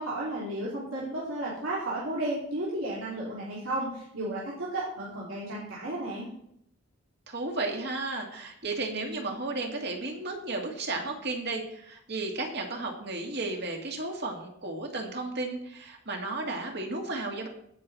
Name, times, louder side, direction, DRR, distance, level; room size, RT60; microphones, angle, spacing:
voice 1, 0.0-6.3, right 1 dB, 85° right, -7 dB, 3.1 m, -33 dB
voice 2, 7.3-17.5, right 2 dB, 55° right, 2 dB, 2.2 m, -33 dB
16.5 x 6.2 x 4.2 m, 0.70 s
head